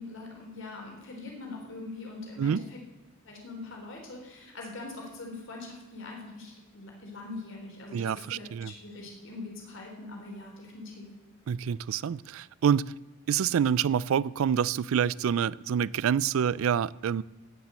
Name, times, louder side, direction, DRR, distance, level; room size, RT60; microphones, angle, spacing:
voice 1, 0.0-2.8 3.3-11.1, left 3 dB, 65° left, 0 dB, 3.5 m, -42 dB
voice 2, 7.9-8.7 11.5-12.9 13.3-17.2, right 8 dB, 75° right, 22 dB, 0.3 m, -27 dB
17.0 x 6.0 x 7.7 m, 1.1 s
head